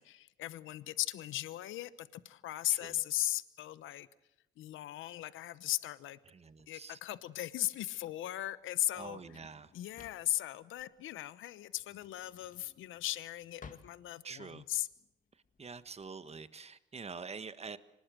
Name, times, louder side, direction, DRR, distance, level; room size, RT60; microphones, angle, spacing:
voice 1, 0.0-4.1 4.6-6.2 6.7-9.2 9.7-14.9, left 14 dB, 80° left, 16 dB, 0.9 m, -37 dB
voice 2, 6.3-7.0 8.9-9.7 14.2-14.6 15.6-17.8, right 5 dB, 30° right, 13 dB, 1.5 m, -46 dB
Drawer open or close, 6.5-16.1, left 5 dB, 40° left, 2.2 m, -59 dB
24.5 x 20.0 x 7.7 m, 0.93 s
cardioid pair, 90°, 20 cm